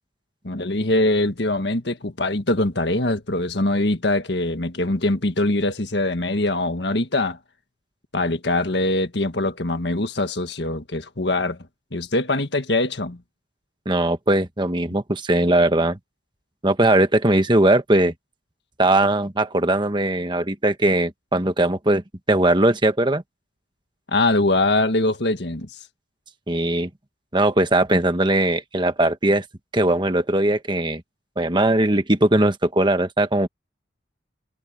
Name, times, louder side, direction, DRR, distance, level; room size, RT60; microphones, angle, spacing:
voice 1, 0.4-7.4 8.1-11.6 11.9-13.2 24.1-25.7, left 2 dB, 65° left, 1.7 m, -22 dB
voice 2, 13.8-16.0 16.6-18.1 18.8-22.0 22.3-23.2 26.5-26.9 27.3-29.4 29.7-31.0 31.4-33.5, right 1 dB, 25° right, 1.3 m, -19 dB
head